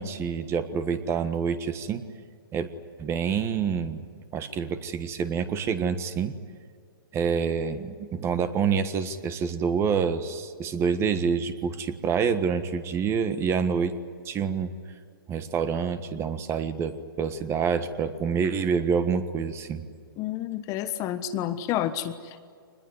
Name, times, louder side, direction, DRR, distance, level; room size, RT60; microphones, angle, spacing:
voice 1, 0.0-2.0 2.5-2.7 3.0-4.1 4.3-6.3 7.1-13.9 14.2-14.7 15.3-19.8, right 6 dB, 20° right, 11 dB, 1.4 m, -27 dB
voice 2, 20.2-22.4, left 11 dB, 30° left, 11 dB, 1.3 m, -30 dB
24.5 x 20.5 x 9.7 m, 2.2 s
hypercardioid pair, 140°, 12 cm